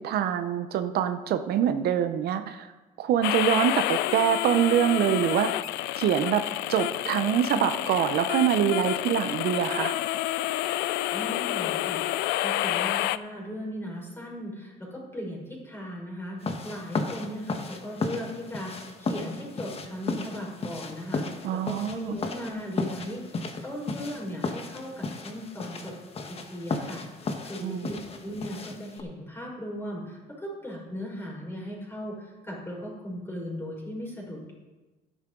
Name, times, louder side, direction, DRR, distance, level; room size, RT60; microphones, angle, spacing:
voice 1, 0.0-2.7 3.0-5.5 6.0-6.4 6.7-9.9 21.4-22.2 27.6-27.9, right 9 dB, 70° right, 9 dB, 0.7 m, -25 dB
sound 1, 3.2-13.2, left 15 dB, 85° left, 0.4 m, -29 dB
voice 2, 11.1-21.2 21.5-25.9 26.3-34.5, equal, 15° left, -3 dB, 4.6 m, -38 dB
sound 2, 16.4-29.0, left 3 dB, 35° left, 1.3 m, -35 dB
12.5 x 10.5 x 3.8 m, 1.2 s
cardioid pair, 110°, 17 cm